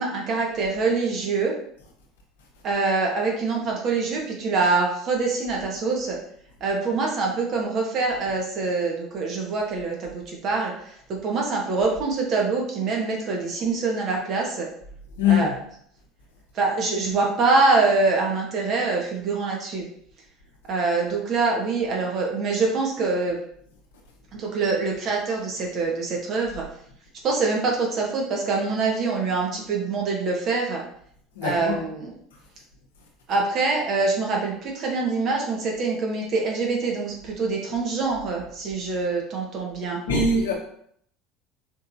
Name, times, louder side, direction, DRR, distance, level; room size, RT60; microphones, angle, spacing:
voice 1, 0.0-1.5 2.6-6.2 6.6-14.7 15.3-15.5 16.5-19.9 20.7-23.4 24.3-26.6 27.2-30.8 31.4-32.1 33.3-40.0, right 3 dB, 50° right, 0 dB, 1.4 m, -25 dB
voice 2, 15.2-15.6 31.3-31.8 40.1-40.5, left 4 dB, 80° left, -1 dB, 1.1 m, -21 dB
5.2 x 3.4 x 2.7 m, 0.66 s
hypercardioid pair, 75°, 0 cm